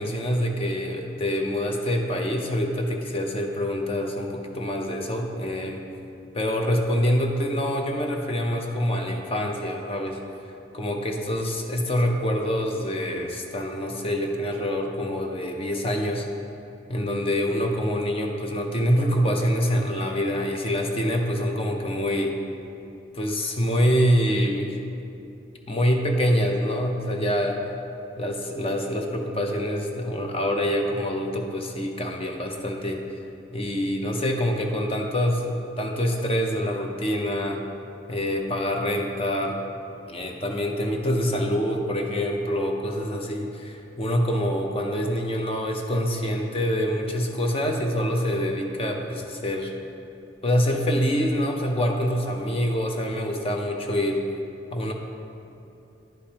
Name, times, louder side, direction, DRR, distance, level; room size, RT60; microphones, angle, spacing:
voice 1, 0.0-5.8 6.3-10.2 10.7-16.3 16.9-22.3 23.1-24.8 25.7-27.6 28.2-33.0 33.5-37.6 38.1-39.6 40.1-49.7 50.4-54.2 54.7-54.9, equal, 30° left, 2 dB, 0.6 m, -25 dB
10.5 x 5.1 x 2.9 m, 2.7 s
head